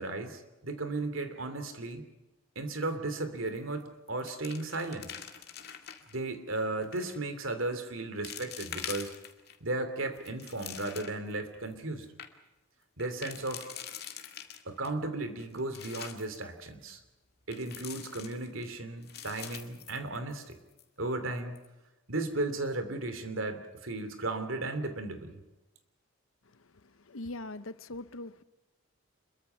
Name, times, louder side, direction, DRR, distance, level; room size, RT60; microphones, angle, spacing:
voice 1, 0.0-2.1 2.5-5.1 6.1-9.1 9.6-12.1 13.0-13.7 14.6-17.0 17.5-20.6 21.0-21.5 22.1-25.4, right 2 dB, 75° right, 2.9 m, -35 dB
sound 1, 3.5-3.8 4.1-6.2 6.8-7.2 7.7-7.8 8.2-9.6 10.0-11.3 11.7-11.8 12.0-12.3 13.0-14.9 15.4-16.4 17.5-18.7 19.0-20.5 20.8-20.9 21.4-21.7, left 9 dB, 50° left, 2.1 m, -44 dB
voice 2, 26.6-28.4, left 2 dB, 85° left, 0.9 m, -42 dB
27.0 x 22.5 x 5.8 m
head